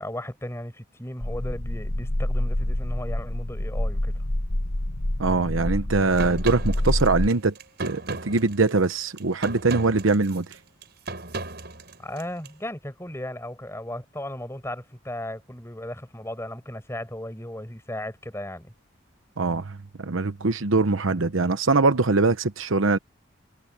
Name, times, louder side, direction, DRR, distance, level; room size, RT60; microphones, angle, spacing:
voice 1, 0.0-4.2 12.0-18.7, left 1 dB, 15° left, 5.0 m, -36 dB
sound 1, 1.2-7.3, left 1 dB, 80° left, 1.8 m, -27 dB
voice 2, 5.2-10.5 19.4-23.0, right 3 dB, 85° right, 0.9 m, -22 dB
sound 2, 6.2-12.5, right 3 dB, 55° right, 5.9 m, -36 dB
head